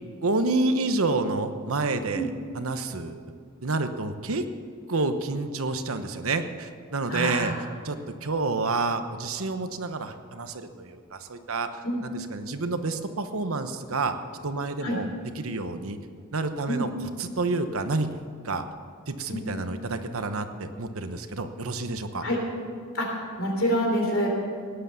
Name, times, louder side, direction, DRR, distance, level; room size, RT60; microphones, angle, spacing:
voice 1, 0.2-3.2 3.6-4.4 4.9-7.5 7.8-14.2 14.4-15.1 15.3-16.0 16.3-18.1 18.4-18.6 19.1-22.2, right 3 dB, 75° right, 8 dB, 1.0 m, -29 dB
voice 2, 7.1-7.5 11.8-12.0 14.8-15.0 16.7-16.9 19.3-19.4 22.2-22.4 22.9-23.1 23.4-24.3, equal, 60° left, 1 dB, 3.7 m, -26 dB
17.5 x 10.0 x 6.9 m, 2.1 s
head